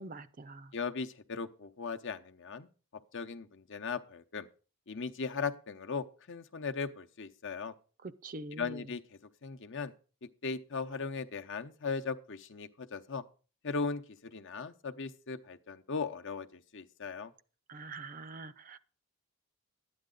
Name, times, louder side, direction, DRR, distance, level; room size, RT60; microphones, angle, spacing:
voice 1, 0.0-0.7 8.0-8.9 17.7-18.8, right 2 dB, 40° right, 13 dB, 0.5 m, -44 dB
voice 2, 0.7-2.7 3.1-4.5 4.9-7.7 8.6-9.0 9.4-9.9 10.4-13.2 13.6-17.3, left 4 dB, 55° left, 7 dB, 0.8 m, -38 dB
12.5 x 9.4 x 3.9 m, 0.36 s
head